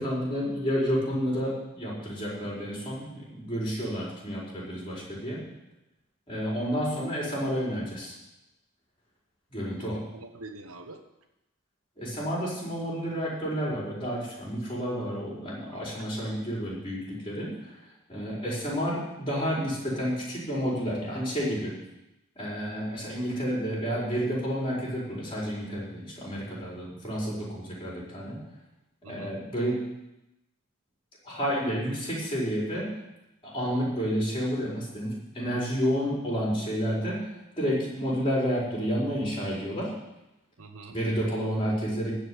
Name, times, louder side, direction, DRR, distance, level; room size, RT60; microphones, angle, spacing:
voice 1, 0.0-5.4 6.3-8.1 9.5-10.0 12.0-17.8 18.1-21.7 22.3-28.4 29.1-29.9 31.2-32.9 33.4-37.3 37.6-39.9 40.9-42.1, equal, 25° left, -5 dB, 4.8 m, -30 dB
voice 2, 9.8-11.0 15.7-15.9 29.0-29.3 40.6-41.0, right 2 dB, 85° right, 5 dB, 1.2 m, -46 dB
15.5 x 5.2 x 9.5 m, 0.93 s
head